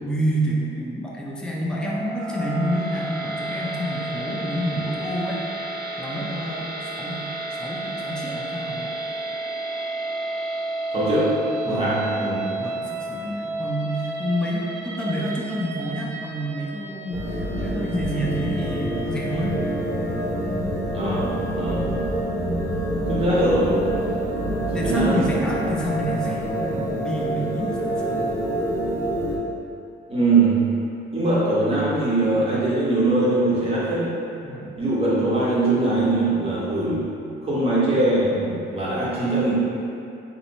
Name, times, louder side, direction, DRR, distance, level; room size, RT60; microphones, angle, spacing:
voice 1, 0.0-5.4 6.0-6.7 7.0-7.2 7.5-8.9 11.7-11.9 12.6-19.6 24.7-28.3 34.4-34.7, equal, 5° left, -4 dB, 0.5 m, -28 dB
sound 1, 1.6-19.9, right 2 dB, 65° right, 0.9 m, -32 dB
voice 2, 10.9-11.3 11.6-12.4 20.9-21.8 23.1-24.4 24.7-25.2 30.1-30.7 31.1-34.1 34.8-37.1 37.4-39.5, right 2 dB, 30° right, -9 dB, 1.3 m, -22 dB
sound 2, 17.1-29.4, right 1 dB, 15° right, 1.0 m, -26 dB
2.8 x 2.7 x 4.1 m, 2.6 s
cardioid pair, 90°, 20 cm